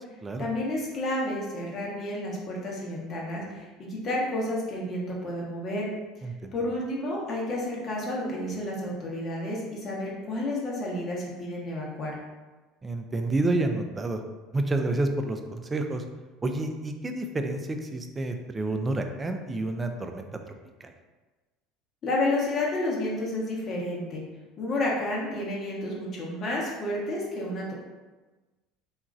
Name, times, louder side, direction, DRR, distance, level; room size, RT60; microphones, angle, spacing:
voice 1, 0.4-5.9 6.5-12.2 22.0-24.2 24.6-27.7, left 1 dB, 45° left, -3 dB, 0.8 m, -30 dB
voice 2, 6.2-6.5 12.8-14.2 14.5-16.0 16.4-20.4 20.8-20.9, right 2 dB, 20° right, 5 dB, 0.3 m, -29 dB
2.9 x 2.4 x 2.4 m, 1.2 s
supercardioid pair, 90°, 0 cm